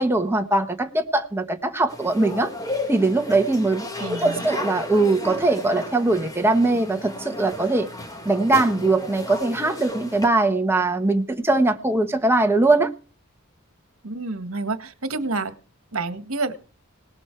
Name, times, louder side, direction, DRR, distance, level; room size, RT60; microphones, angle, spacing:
voice 1, 0.0-2.5 2.9-7.9 8.2-12.9, right 2 dB, 10° right, 1.3 m, -21 dB
sound 1, 1.9-10.3, left 1 dB, 15° left, 1.7 m, -34 dB
voice 2, 4.0-4.5 14.0-15.5 15.9-16.5, right 3 dB, 65° right, 1.7 m, -28 dB
18.5 x 11.5 x 4.7 m
head